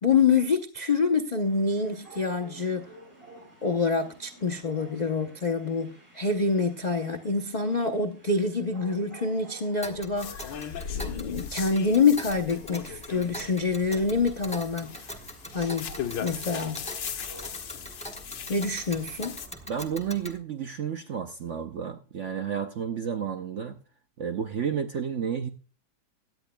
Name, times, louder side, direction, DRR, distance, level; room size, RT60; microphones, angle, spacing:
voice 1, 0.0-2.8 3.6-10.6 10.9-14.9 15.5-15.9 16.2-16.8 18.5-19.4, left 4 dB, 55° left, 0.4 m, -26 dB
sound 1, 1.4-19.7, right 1 dB, 30° right, 6.7 m, -52 dB
Tick, 9.8-20.4, equal, 5° left, 0.7 m, -43 dB
sound 2, 10.2-19.5, left 8 dB, 80° left, 1.7 m, -38 dB
voice 2, 19.7-23.8 24.2-25.5, right 7 dB, 60° right, 0.8 m, -31 dB
17.0 x 10.5 x 2.2 m
omnidirectional pair, 2.0 m